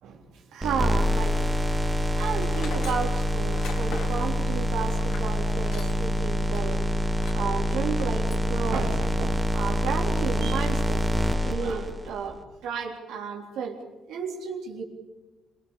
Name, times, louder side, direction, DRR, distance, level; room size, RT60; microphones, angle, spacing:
voice 1, 0.0-13.8 14.1-14.8, right 6 dB, 85° right, 1 dB, 3.6 m, -33 dB
sound 1, 0.6-12.3, equal, 10° right, 1.9 m, -26 dB
Tools, 2.4-6.2 6.5-6.6 7.1-7.5 7.9-8.5, left 4 dB, 75° left, 4.2 m, -42 dB
25.5 x 19.5 x 7.0 m, 1.1 s
cardioid pair, 90°, 0 cm